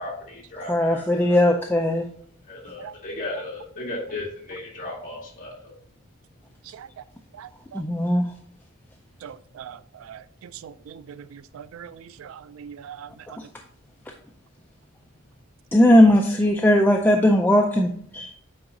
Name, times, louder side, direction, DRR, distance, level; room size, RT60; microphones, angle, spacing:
voice 1, 0.0-1.6 2.5-5.7, left 2 dB, 40° left, 2.0 m, -35 dB
voice 2, 0.7-2.1 7.7-8.3 15.7-18.3, left 1 dB, 10° left, 0.3 m, -18 dB
voice 3, 7.4-7.8 9.2-13.4, right 8 dB, 90° right, 0.3 m, -42 dB
8.6 x 4.7 x 2.7 m
head